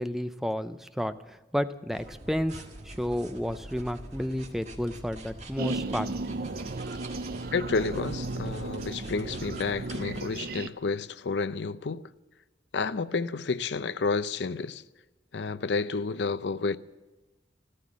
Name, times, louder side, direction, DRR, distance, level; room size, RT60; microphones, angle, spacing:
voice 1, 0.0-6.1, equal, ahead, 0.5 m, -31 dB
sound 1, 1.9-10.2, right 1 dB, 40° right, 1.6 m, -44 dB
sound 2, 5.6-10.7, right 2 dB, 55° right, 0.6 m, -35 dB
voice 2, 7.5-12.1 12.7-14.8 15.3-16.8, left 4 dB, 75° left, 0.5 m, -30 dB
14.5 x 13.5 x 7.3 m
head